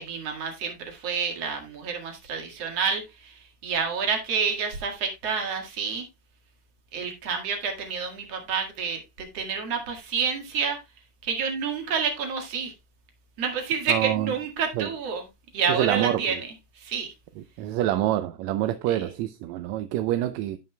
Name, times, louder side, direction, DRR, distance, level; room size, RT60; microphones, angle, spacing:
voice 1, 0.0-6.1 6.9-10.8 11.2-12.7 13.4-15.2 15.5-17.1 18.9-19.0, right 6 dB, 60° right, 2.9 m, -29 dB
voice 2, 13.9-14.3 14.8-14.9 15.7-16.4 17.6-20.6, right 13 dB, 80° right, 1.8 m, -26 dB
16.0 x 5.4 x 2.2 m
omnidirectional pair, 3.3 m